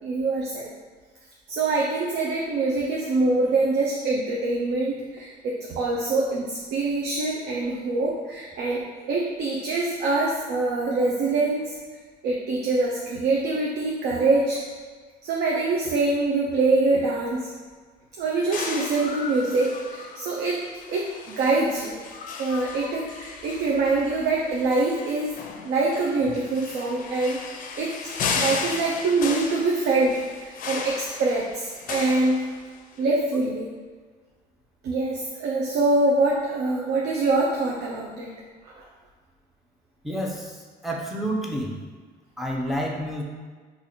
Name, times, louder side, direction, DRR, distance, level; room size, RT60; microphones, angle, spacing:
voice 1, 0.0-0.7 1.5-11.8 12.2-14.6 15.2-17.5 18.2-22.0 22.4-32.5 33.0-33.7 34.8-38.3 38.7-38.9, right 3 dB, 70° right, -3 dB, 0.5 m, -24 dB
sound 1, 18.5-33.0, left 5 dB, 55° left, 0.4 m, -35 dB
voice 2, 40.0-41.8 42.4-43.2, equal, ahead, -2 dB, 0.5 m, -29 dB
2.9 x 2.5 x 4.0 m, 1.5 s
cardioid pair, 110°, 17 cm